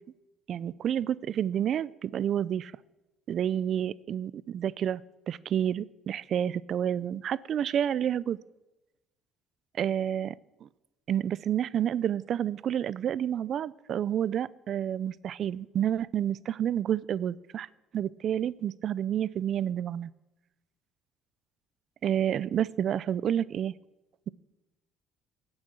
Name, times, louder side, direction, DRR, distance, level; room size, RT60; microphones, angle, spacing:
voice 1, 0.5-2.7 3.3-5.0 5.3-8.4 9.8-10.3 10.6-10.7 11.1-17.7 17.9-20.1 22.0-23.7, right 9 dB, 50° right, 20 dB, 0.4 m, -29 dB
16.5 x 6.4 x 8.7 m, 1.0 s
cardioid pair, 125°, 0 cm